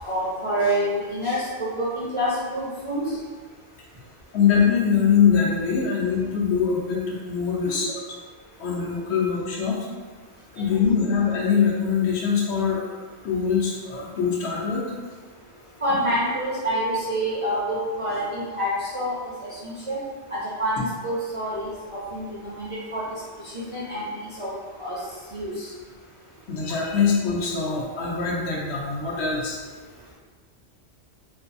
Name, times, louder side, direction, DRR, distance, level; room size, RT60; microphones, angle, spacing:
voice 1, 0.0-3.1 7.6-7.8 10.6-10.8 15.8-19.1 19.4-20.0 20.3-23.1 23.4-24.5 24.8-25.0 25.3-25.7, equal, 45° right, -9 dB, 0.4 m, -27 dB
voice 2, 4.3-8.0 8.6-9.9 10.5-12.8 13.2-14.9 26.5-29.6, left 6 dB, 80° left, -3 dB, 0.9 m, -23 dB
2.6 x 2.3 x 2.5 m, 1.4 s
omnidirectional pair, 1.1 m